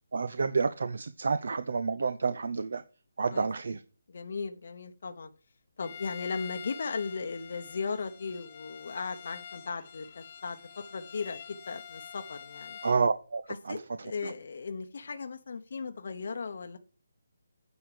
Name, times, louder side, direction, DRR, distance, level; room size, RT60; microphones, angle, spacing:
voice 1, 0.1-2.8 3.2-3.8 12.8-14.3, right 4 dB, 60° right, 0.6 m, -30 dB
voice 2, 4.1-5.3 5.8-12.8 13.7-16.8, left 5 dB, 50° left, 0.9 m, -37 dB
Bowed string instrument, 5.8-13.0, left 7 dB, 30° left, 1.2 m, -47 dB
9.7 x 6.2 x 4.9 m
hypercardioid pair, 175°, 0 cm